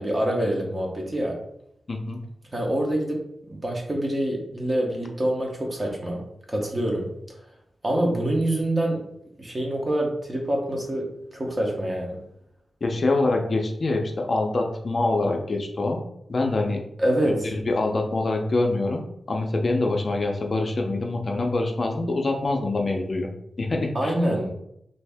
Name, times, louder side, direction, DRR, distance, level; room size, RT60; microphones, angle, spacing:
voice 1, 0.0-1.4 2.5-6.2 6.5-7.4 7.8-9.0 9.4-12.2 17.0-17.5 23.9-24.5, right 1 dB, 25° right, 0 dB, 0.8 m, -26 dB
voice 2, 1.9-2.2 12.8-16.0 16.3-16.8 17.3-19.0 19.3-23.3 23.6-24.1, left 2 dB, 45° left, 1 dB, 0.5 m, -25 dB
2.6 x 2.6 x 3.4 m, 0.76 s
wide cardioid pair, 105°, 0 cm